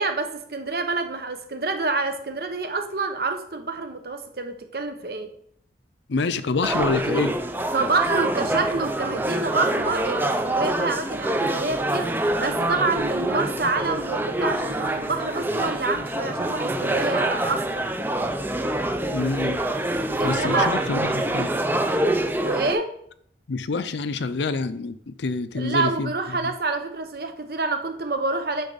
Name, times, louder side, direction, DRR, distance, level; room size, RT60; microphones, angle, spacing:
voice 1, 0.0-5.3 7.7-17.8 20.2-20.7 22.4-22.9 25.5-28.6, right 3 dB, 55° right, 6 dB, 1.0 m, -27 dB
voice 2, 6.1-7.3 19.1-19.6 20.2-21.5 23.5-26.1 26.4-26.5, left 3 dB, 75° left, 13 dB, 0.6 m, -27 dB
sound 1, 6.6-22.7, right 1 dB, 10° right, 0.5 m, -25 dB
10.5 x 6.2 x 4.0 m, 0.68 s
head